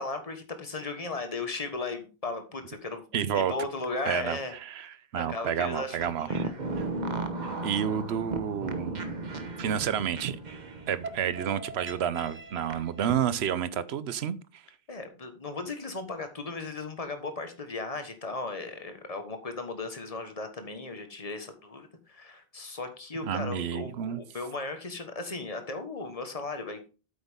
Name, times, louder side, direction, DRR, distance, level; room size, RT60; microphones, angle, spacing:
voice 1, 0.0-4.5 5.1-6.5 14.9-26.9, left 3 dB, 35° left, 1.6 m, -36 dB
voice 2, 3.1-3.5 4.1-6.4 6.8-6.9 7.6-9.0 9.6-10.4 10.9-14.6 23.2-24.2, right 9 dB, 90° right, 1.0 m, -30 dB
sound 1, 5.9-13.1, right 2 dB, 45° right, 1.2 m, -36 dB
8.9 x 8.0 x 3.6 m
omnidirectional pair, 1.0 m